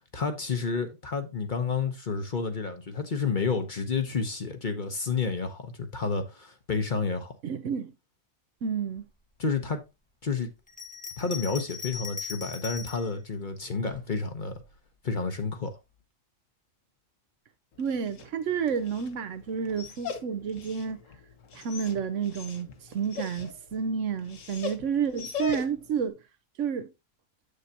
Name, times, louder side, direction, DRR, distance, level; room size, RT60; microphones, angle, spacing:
voice 1, 0.1-7.3 9.4-9.8 10.2-10.5 11.2-14.6 15.0-15.8, left 4 dB, 40° left, 0.9 m, -30 dB
voice 2, 7.4-7.9 8.6-9.1 17.8-21.0 21.5-26.2 26.6-26.9, right 7 dB, 70° right, 1.0 m, -30 dB
Bell, 10.7-13.1 13.9-14.8, left 6 dB, 10° left, 0.6 m, -39 dB
Dog, 17.7-26.0, left 5 dB, 70° left, 1.3 m, -40 dB
8.0 x 6.6 x 2.8 m
omnidirectional pair, 1.4 m